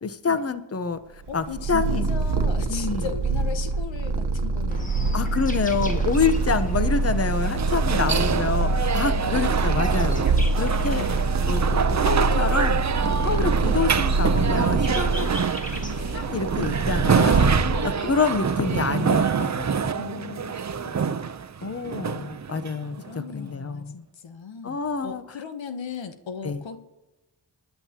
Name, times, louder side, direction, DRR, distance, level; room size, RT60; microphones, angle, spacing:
voice 1, 0.0-2.1 2.7-3.1 5.1-10.2 10.6-11.1 11.5-12.8 13.2-15.3 16.1-17.5 18.0-19.9 21.6-23.9 24.6-25.2 26.4-26.6, left 5 dB, 35° left, 11 dB, 0.9 m, -27 dB
voice 2, 1.3-5.4 7.9-8.6 9.2-9.5 10.8-11.1 13.4-13.6 17.7-18.2 19.9-20.5 20.8-21.3 21.9-22.4 23.0-26.8, left 6 dB, 85° left, 8 dB, 1.1 m, -38 dB
Purr, 1.3-18.1, right 3 dB, 60° right, 1.1 m, -25 dB
sound 1, 4.7-19.2, equal, 15° left, 1.9 m, -40 dB
sound 2, 6.1-23.1, right 6 dB, 40° right, 0.7 m, -26 dB
20.5 x 10.5 x 2.9 m, 1.0 s
cardioid pair, 60°, 44 cm